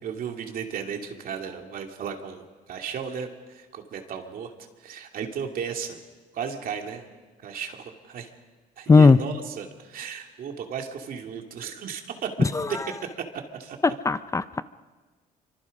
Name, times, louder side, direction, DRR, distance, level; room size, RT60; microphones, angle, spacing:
voice 1, 0.0-4.5 4.8-6.0 6.3-7.1 7.4-8.3 8.8-12.6 13.5-13.8, right 7 dB, 60° right, 3 dB, 2.7 m, -35 dB
voice 2, 14.0-14.6, left 4 dB, 20° left, 14 dB, 0.6 m, -16 dB
27.5 x 25.0 x 5.4 m, 1.4 s
cardioid pair, 110°, 17 cm